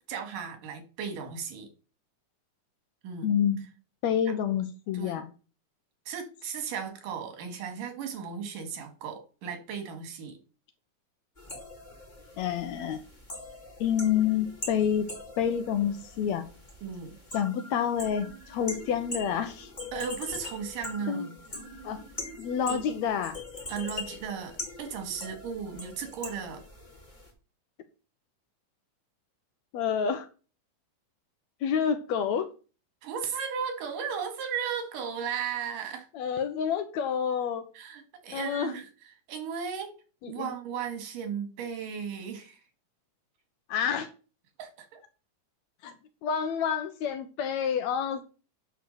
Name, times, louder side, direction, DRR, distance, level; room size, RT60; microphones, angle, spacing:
voice 1, 0.1-1.7 3.0-3.3 4.9-5.2 6.1-10.4 16.8-17.2 19.9-21.4 22.7-22.8 23.7-26.6 33.0-36.1 37.7-38.9 39.3-39.9 40.3-42.6 44.6-45.0, right 7 dB, 90° right, 3.4 m, -35 dB
voice 2, 3.2-3.7 4.0-5.3 12.4-13.0 13.8-15.1 15.4-16.4 17.3-19.7 21.1-21.3 21.8-22.0 22.4-23.4 29.7-30.3 31.6-32.5 36.1-37.7 38.3-38.7 40.2-40.5 43.7-44.1 45.8-45.9 46.2-48.2, left 8 dB, 70° left, 1.8 m, -28 dB
sound 1, 11.4-27.3, left 2 dB, 15° left, 2.4 m, -42 dB
9.3 x 4.7 x 6.4 m
omnidirectional pair, 3.7 m